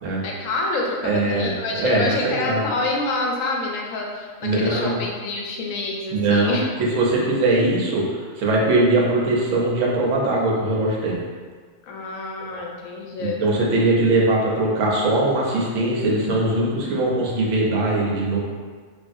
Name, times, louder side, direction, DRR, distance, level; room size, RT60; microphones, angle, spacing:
voice 1, 0.2-6.7 11.8-13.4, left 2 dB, 90° left, 0 dB, 1.0 m, -27 dB
voice 2, 1.0-2.7 4.4-5.0 6.1-6.6 6.9-8.0 8.4-11.2 12.5-12.6 13.2-18.4, right 2 dB, 80° right, -3 dB, 1.0 m, -21 dB
3.3 x 2.4 x 2.5 m, 1.5 s
omnidirectional pair, 1.3 m